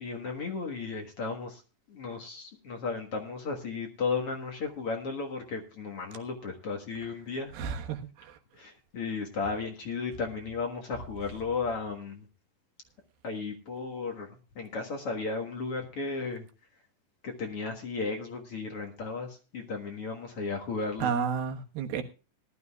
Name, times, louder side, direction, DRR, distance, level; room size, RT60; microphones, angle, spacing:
voice 1, 0.0-1.6 1.9-7.5 8.6-12.2 13.2-14.3 14.6-16.5 17.2-21.1, left 4 dB, 50° left, 2 dB, 2.1 m, -34 dB
voice 2, 7.5-8.4 21.0-22.0, right 7 dB, 85° right, 5 dB, 3.2 m, -31 dB
19.5 x 12.5 x 2.4 m, 0.32 s
omnidirectional pair, 4.1 m